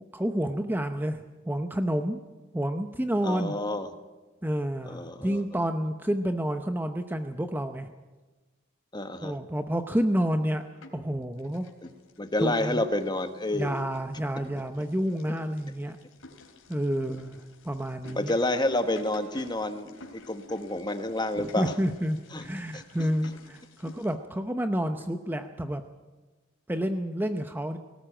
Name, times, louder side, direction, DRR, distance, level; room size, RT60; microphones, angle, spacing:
voice 1, 0.1-2.2 2.5-3.6 4.4-7.9 9.2-10.6 10.9-11.7 12.4-12.8 13.5-16.0 16.7-18.3 21.4-25.8 26.7-27.8, equal, 10° right, 7 dB, 0.7 m, -29 dB
voice 2, 3.2-3.9 4.9-5.4 8.9-9.3 11.8-11.9 12.2-13.8 18.1-21.7 22.3-22.4 22.7-22.8, left 1 dB, 20° left, 8 dB, 1.3 m, -29 dB
sound 1, 10.2-11.1 11.4-24.1, left 2 dB, 85° left, 3.3 m, -52 dB
18.5 x 18.5 x 8.9 m, 1.2 s
head